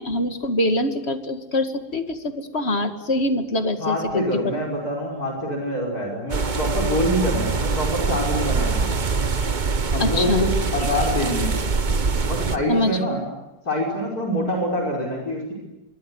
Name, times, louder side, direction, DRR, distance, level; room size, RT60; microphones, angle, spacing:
voice 1, 0.0-4.5 10.0-10.5 12.7-13.0, left 1 dB, 35° left, 8 dB, 2.3 m, -24 dB
voice 2, 3.8-8.9 9.9-11.6 12.3-13.2 13.7-15.5, equal, 55° left, 1 dB, 6.0 m, -25 dB
sound 1, 6.3-12.6, right 4 dB, 30° right, 1.0 m, -24 dB
25.5 x 23.0 x 9.6 m, 0.97 s
omnidirectional pair, 1.9 m